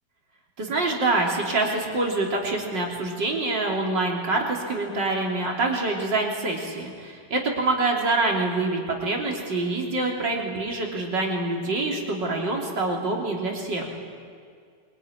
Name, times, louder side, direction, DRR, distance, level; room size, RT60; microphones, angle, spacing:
voice 1, 0.6-13.9, right 2 dB, 75° right, -1 dB, 4.0 m, -26 dB
23.0 x 22.5 x 9.9 m, 2.2 s
omnidirectional pair, 1.9 m